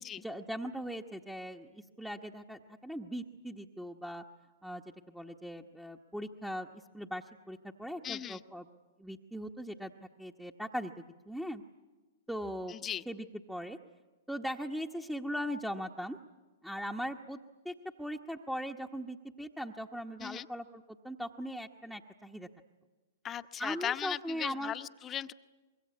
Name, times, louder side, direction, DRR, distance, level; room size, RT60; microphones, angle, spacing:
voice 1, 0.2-4.2 4.6-6.7 6.9-8.6 9.0-9.9 10.2-10.9 11.3-11.6 12.3-12.8 13.1-13.8 14.3-16.2 16.6-17.4 17.6-22.5 23.6-24.7, equal, ahead, 2 dB, 1.0 m, -39 dB
voice 2, 8.0-8.4 12.7-13.0 20.2-20.5 23.2-25.3, left 10 dB, 25° left, 12 dB, 0.9 m, -37 dB
25.0 x 22.0 x 9.5 m, 1.3 s
figure-of-eight pair, 110°, 0 cm